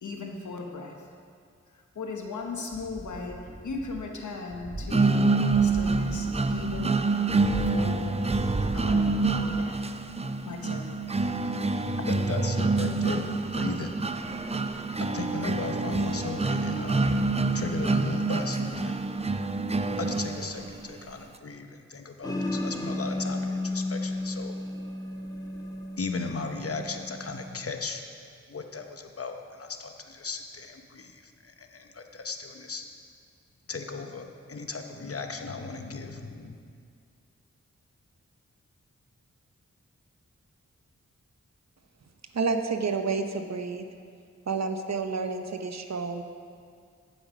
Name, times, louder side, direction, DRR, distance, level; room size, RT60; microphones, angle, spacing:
voice 1, 0.0-1.1 1.7-5.3 5.6-7.0 7.6-8.1 8.7-9.8 10.4-10.9, left 3 dB, 90° left, 2 dB, 1.1 m, -37 dB
sound 1, 2.7-4.1 4.4-9.7 10.1-10.2, right 2 dB, 45° right, 1.2 m, -38 dB
sound 2, 4.9-20.9, right 3 dB, 20° right, 0.5 m, -27 dB
voice 2, 11.7-14.0 14.7-17.3 17.5-19.0 20.0-24.6 26.0-28.0 28.5-32.8 33.7-36.6, left 4 dB, 50° left, 5 dB, 0.9 m, -37 dB
sound 3, 22.2-27.5, left 1 dB, 15° left, 1.4 m, -33 dB
voice 3, 42.3-43.8 44.5-46.2, right 4 dB, 65° right, 7 dB, 0.8 m, -29 dB
15.0 x 5.4 x 5.0 m, 2.2 s
cardioid pair, 45°, 29 cm